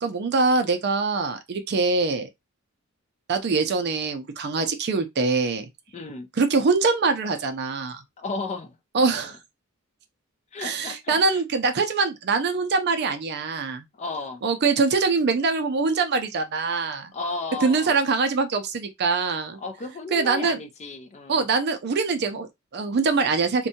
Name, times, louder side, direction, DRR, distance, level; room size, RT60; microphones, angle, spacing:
voice 1, 0.0-2.3 3.3-5.7 6.4-8.0 8.9-9.4 10.6-13.9 14.4-17.1 17.6-19.6 20.1-20.6 21.3-23.7, right 4 dB, 50° right, 0.5 m, -23 dB
voice 2, 5.9-6.3 8.2-8.8 10.5-11.4 14.0-14.4 17.1-17.9 19.6-21.5, left 3 dB, 30° left, 0.4 m, -34 dB
2.6 x 2.2 x 2.7 m
head